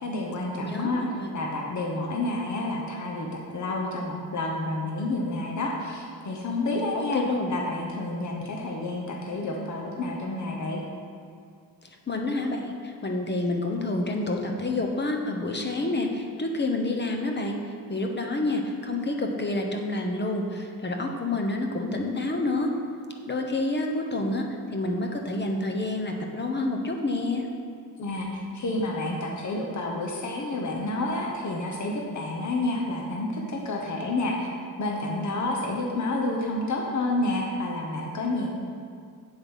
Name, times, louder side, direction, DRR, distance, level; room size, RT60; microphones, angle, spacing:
voice 1, 0.0-1.1 1.3-10.8 28.0-34.5 34.8-38.5, left 2 dB, 55° left, -1 dB, 1.2 m, -29 dB
voice 2, 0.5-1.3 6.9-7.5 12.1-17.6 17.9-22.7 23.2-24.5 24.7-27.5, left 2 dB, 30° left, 2 dB, 1.1 m, -28 dB
7.9 x 7.9 x 5.6 m, 2.2 s
wide cardioid pair, 130°, 35 cm